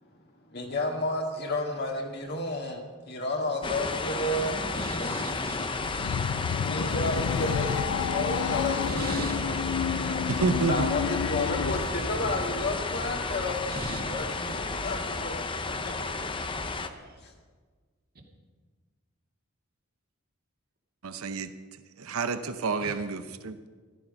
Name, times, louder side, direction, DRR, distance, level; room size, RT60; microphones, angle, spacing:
voice 1, 0.5-5.1 5.5-6.3 6.6-9.2 9.4-10.3 10.7-13.7 14.1-15.9 16.3-16.4 17.2-17.3, left 1 dB, 50° left, 1 dB, 1.9 m, -32 dB
thunder rain birds, 3.6-16.9, left 3 dB, 25° left, 0.7 m, -32 dB
voice 2, 4.7-5.7 8.9-9.3 13.7-14.0 16.4-17.2 22.8-22.9, right 2 dB, 45° right, 1 dB, 2.3 m, -39 dB
sound 1, 5.7-12.0, left 8 dB, 80° left, 0.3 m, -31 dB
voice 3, 10.3-10.9 21.0-21.5 22.0-23.7, right 4 dB, 90° right, 10 dB, 0.8 m, -29 dB
14.0 x 13.5 x 5.3 m, 1.5 s
head